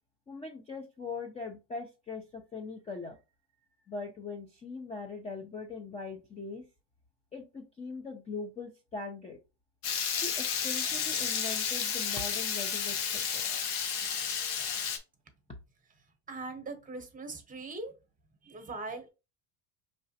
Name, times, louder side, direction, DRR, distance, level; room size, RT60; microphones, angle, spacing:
voice 1, 0.3-3.2 3.9-6.7 7.3-9.4 10.2-13.4, left 4 dB, 15° left, 2 dB, 0.4 m, -41 dB
Water tap faucet / Liquid, 9.8-15.0, left 7 dB, 85° left, 1.0 m, -32 dB
voice 2, 16.3-17.9 18.4-19.1, right 3 dB, 20° right, 6 dB, 0.9 m, -40 dB
4.8 x 3.2 x 2.7 m, 0.28 s
cardioid pair, 145°, 42 cm